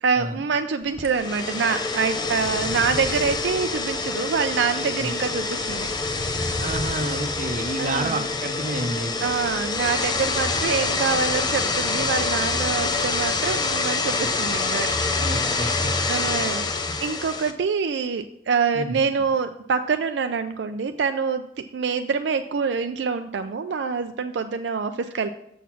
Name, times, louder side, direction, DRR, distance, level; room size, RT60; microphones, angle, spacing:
voice 1, 0.0-6.5 7.8-8.2 9.2-15.5 16.1-16.6 17.0-21.4 21.7-25.3, right 5 dB, 70° right, 7 dB, 0.4 m, -26 dB
sound 1, 1.0-17.5, left 3 dB, 25° left, 0.6 m, -26 dB
voice 2, 5.0-5.3 6.6-9.3 15.2-15.9 16.9-17.0 18.7-19.3, right 2 dB, 45° right, 8 dB, 0.8 m, -30 dB
7.0 x 6.2 x 5.9 m, 0.76 s
head